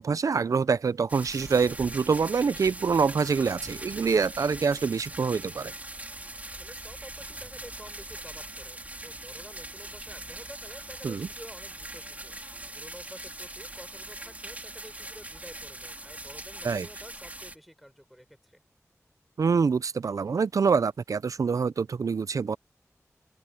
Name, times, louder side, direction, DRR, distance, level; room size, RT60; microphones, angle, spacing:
voice 1, 0.0-5.7 11.0-11.3 16.6-16.9 19.4-22.6, right 5 dB, 85° right, 0.4 m, -25 dB
sound 1, 1.1-17.6, right 1 dB, 30° right, 3.6 m, -41 dB
voice 2, 6.5-12.3 12.7-18.6, equal, ahead, 5.3 m, -49 dB
wide cardioid pair, 55°, 6 cm